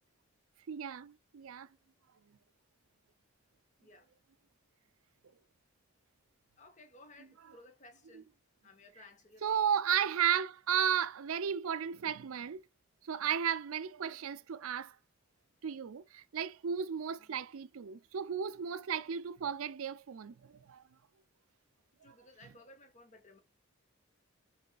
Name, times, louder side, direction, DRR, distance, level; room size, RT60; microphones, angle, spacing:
voice 1, 0.7-1.7 9.4-12.6 13.0-15.0 15.6-20.8, right 8 dB, 80° right, 0.5 m, -34 dB
voice 2, 6.6-8.3 8.6-9.6 17.2-17.4 22.0-23.4, left 2 dB, 35° left, 1.0 m, -58 dB
5.3 x 3.5 x 2.3 m
head